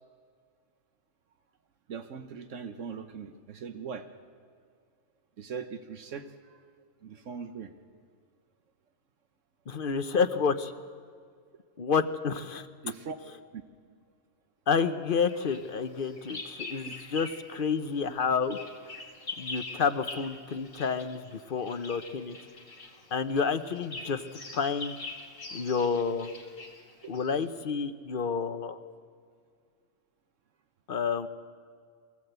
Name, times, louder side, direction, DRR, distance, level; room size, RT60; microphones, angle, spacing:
voice 1, 1.9-4.1 5.4-6.6 7.0-7.7 12.8-13.2 13.5-13.6 16.8-16.9, right 6 dB, 75° right, 8 dB, 1.3 m, -40 dB
voice 2, 9.7-10.7 11.8-12.7 14.7-18.6 19.4-22.4 23.1-25.0 25.5-26.3 27.1-28.8 30.9-31.3, left 5 dB, 45° left, 9 dB, 1.0 m, -29 dB
Bird vocalization bird call bird song, 15.3-17.6 17.9-27.4, left 3 dB, 80° left, 3.1 m, -44 dB
23.0 x 15.5 x 8.1 m, 2.1 s
omnidirectional pair, 1.3 m